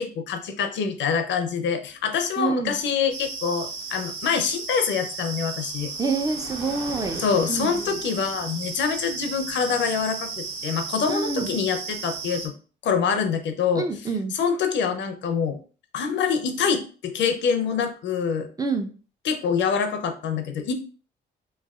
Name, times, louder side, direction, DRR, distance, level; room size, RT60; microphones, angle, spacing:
voice 1, 0.0-5.9 7.2-12.5 12.8-13.8 14.3-15.6 15.9-18.5 19.2-20.7, left 6 dB, 65° left, 7 dB, 0.5 m, -25 dB
sound 1, 1.9-12.5, right 3 dB, 70° right, 1.0 m, -47 dB
voice 2, 2.4-2.8 6.0-8.0 11.1-11.5 13.8-14.3 18.6-18.9, right 4 dB, 20° right, 6 dB, 0.4 m, -27 dB
sound 2, 3.1-12.5, right 4 dB, 85° right, 0.7 m, -35 dB
3.1 x 2.2 x 2.3 m, 0.38 s
cardioid pair, 90°, 20 cm